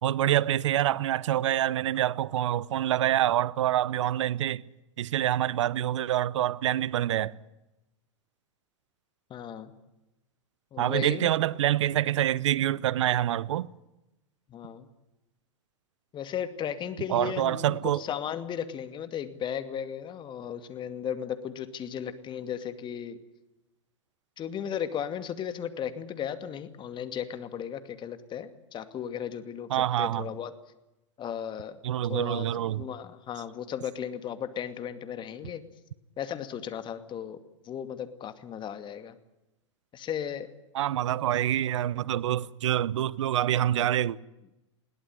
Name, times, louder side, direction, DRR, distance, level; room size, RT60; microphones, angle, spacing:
voice 1, 0.0-4.6 5.0-7.3 10.8-13.7 17.1-18.0 29.7-30.3 31.8-32.8 40.7-44.2, right 12 dB, 70° right, 0.9 m, -26 dB
voice 2, 9.3-9.7 10.7-11.3 14.5-14.9 16.1-23.2 24.4-30.5 31.2-31.8 32.1-35.6 36.2-37.4 37.6-39.2 39.9-40.5, left 9 dB, 30° left, 2.4 m, -35 dB
21.5 x 17.5 x 9.6 m
hypercardioid pair, 105°, 16 cm